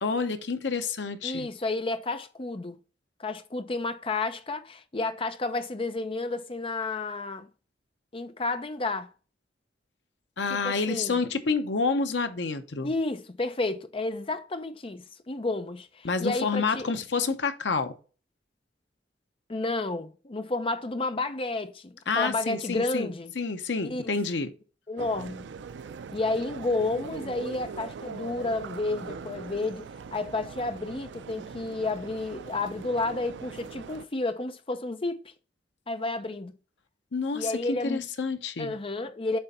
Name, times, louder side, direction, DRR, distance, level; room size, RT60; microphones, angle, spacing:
voice 1, 0.0-1.5 10.4-12.9 16.0-17.9 22.1-23.1 23.4-24.5 37.1-38.7, left 4 dB, 75° left, 0.8 m, -28 dB
voice 2, 1.2-2.8 3.2-7.5 8.1-9.1 10.5-11.2 12.8-16.9 19.5-23.3 23.8-24.0 24.9-25.5 26.1-35.3 35.9-36.6 37.3-38.1 38.6-39.4, left 2 dB, 30° left, 0.6 m, -31 dB
sound 1, 25.0-34.0, right 5 dB, 75° right, 0.4 m, -41 dB
7.9 x 3.4 x 4.2 m
head